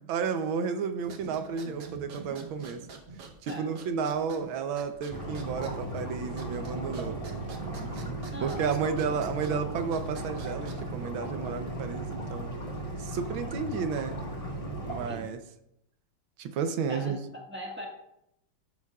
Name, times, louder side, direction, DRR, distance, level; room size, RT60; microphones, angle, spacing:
voice 1, 0.0-2.9 3.4-7.2 7.8-8.2 8.4-12.6 13.0-14.2 14.9-15.4 16.4-17.2, right 6 dB, 85° right, 9 dB, 1.5 m, -32 dB
sound 1, 1.0-11.0, right 4 dB, 55° right, 1.3 m, -47 dB
sound 2, 5.1-15.1, right 1 dB, 20° left, 1.3 m, -36 dB
voice 2, 8.3-8.8 9.1-9.2 15.0-15.3 16.9-17.9, equal, 5° right, -2 dB, 1.3 m, -41 dB
13.5 x 7.2 x 2.4 m, 0.81 s
omnidirectional pair, 2.2 m